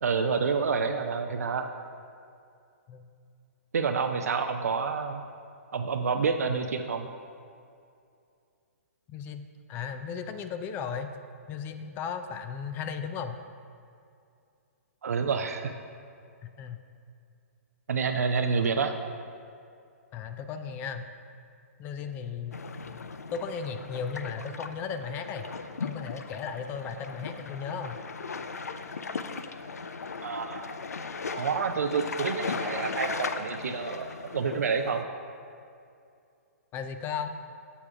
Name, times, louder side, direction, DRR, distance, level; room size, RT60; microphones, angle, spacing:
voice 1, 0.0-1.7 3.7-5.2 5.7-7.1 15.0-15.7 17.9-19.0 30.2-30.7 31.3-35.0, right 5 dB, 75° right, 5 dB, 0.5 m, -28 dB
voice 2, 9.1-11.1 11.5-13.4 16.6-16.8 20.1-21.1 21.8-22.6 23.3-25.4 25.8-28.0 36.7-37.3, left 6 dB, 25° left, 8 dB, 0.4 m, -35 dB
sound 1, 22.5-35.0, left 4 dB, 85° left, 0.5 m, -37 dB
7.2 x 7.0 x 4.8 m, 2.5 s
hypercardioid pair, 135°, 8 cm